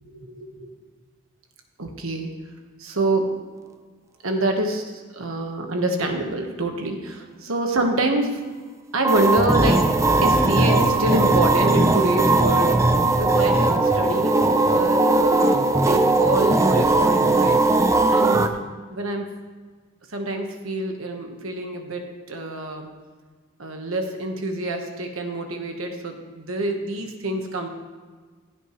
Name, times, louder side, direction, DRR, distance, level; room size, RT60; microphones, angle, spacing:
voice 1, 0.1-0.7 1.8-2.3 2.8-3.4 4.2-8.4 8.9-9.9 10.2-17.6 18.1-18.5 18.9-19.3 20.1-22.9 23.6-27.7, right 2 dB, 85° right, 4 dB, 1.4 m, -26 dB
sound 1, 9.0-18.5, right 2 dB, 15° right, 0.5 m, -19 dB
15.5 x 8.9 x 3.2 m, 1.5 s
head